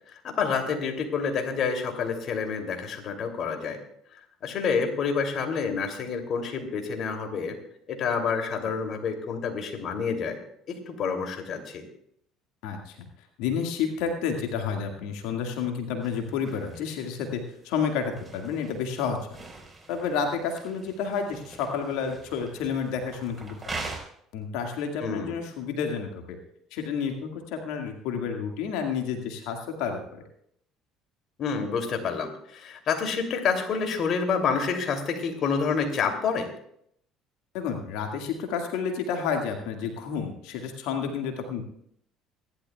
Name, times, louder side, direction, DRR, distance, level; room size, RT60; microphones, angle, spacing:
voice 1, 0.2-3.8 4.4-7.6 7.9-10.4 10.7-11.8 25.0-25.3 31.4-36.5, left 5 dB, 55° left, 4 dB, 2.8 m, -28 dB
voice 2, 12.6-13.1 13.4-19.2 19.9-23.5 24.3-26.4 26.7-30.2 37.5-41.6, left 6 dB, 70° left, 3 dB, 1.9 m, -30 dB
sound 1, 16.0-24.0, right 3 dB, 25° right, 4.5 m, -43 dB
27.5 x 11.5 x 2.3 m, 0.69 s
hypercardioid pair, 60°, 0 cm